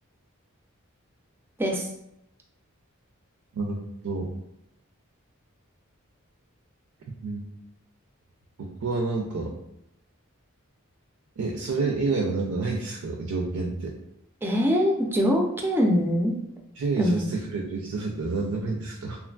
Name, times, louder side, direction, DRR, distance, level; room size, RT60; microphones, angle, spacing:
voice 1, 8.6-9.5 11.4-13.9 16.8-19.2, right 3 dB, 75° right, 1 dB, 0.4 m, -29 dB
voice 2, 14.4-16.3 17.0-17.3, equal, 10° right, 1 dB, 0.3 m, -23 dB
3.0 x 2.3 x 2.2 m, 0.81 s
head